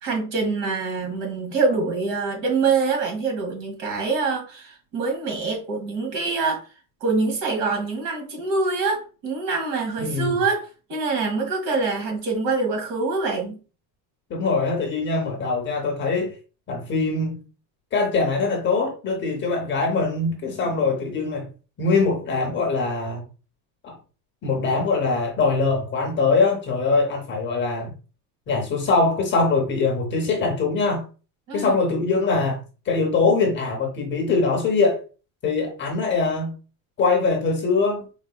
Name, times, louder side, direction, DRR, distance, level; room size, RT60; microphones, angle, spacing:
voice 1, 0.0-6.6 7.0-13.6 31.5-31.8, right 4 dB, 65° right, 2.0 m, -25 dB
voice 2, 10.0-10.4 14.3-16.4 16.7-17.4 17.9-21.5 21.8-23.2 23.8-24.0 24.4-27.9 28.5-31.0 31.5-35.0 35.4-36.5 37.0-38.1, left 4 dB, 25° left, 0.7 m, -22 dB
4.7 x 3.6 x 2.2 m
cardioid pair, 180°, 43 cm